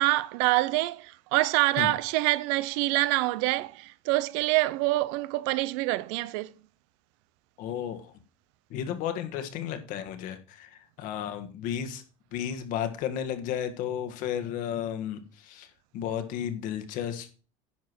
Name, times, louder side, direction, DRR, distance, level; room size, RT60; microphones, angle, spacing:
voice 1, 0.0-6.5, right 19 dB, 75° right, 0.5 m, -26 dB
voice 2, 7.6-8.1 8.7-12.0 12.3-17.3, left 9 dB, 60° left, 1.6 m, -33 dB
10.5 x 4.7 x 6.1 m
supercardioid pair, 125°, 15 cm